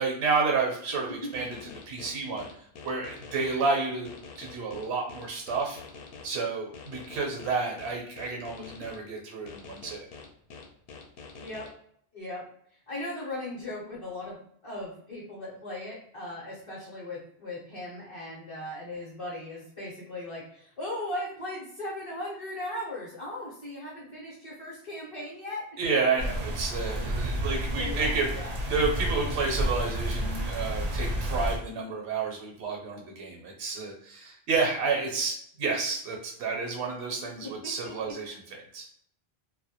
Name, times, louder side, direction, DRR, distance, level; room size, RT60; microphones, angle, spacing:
voice 1, 0.0-1.6 1.9-2.5 2.8-5.8 6.2-10.0 25.8-28.3 28.7-38.9, right 4 dB, 80° right, 0 dB, 0.8 m, -30 dB
sound 1, 1.3-3.5 4.0-6.3 6.7-9.0 9.5-11.7, left 5 dB, 70° left, 0.8 m, -45 dB
voice 2, 11.4-11.7 12.1-14.4 14.6-25.7 27.3-28.6 37.4-38.1, left 1 dB, 35° left, -6 dB, 0.6 m, -38 dB
sound 2, 26.2-31.6, right 1 dB, 55° right, 0.4 m, -30 dB
2.1 x 2.1 x 2.7 m, 0.66 s
omnidirectional pair, 1.1 m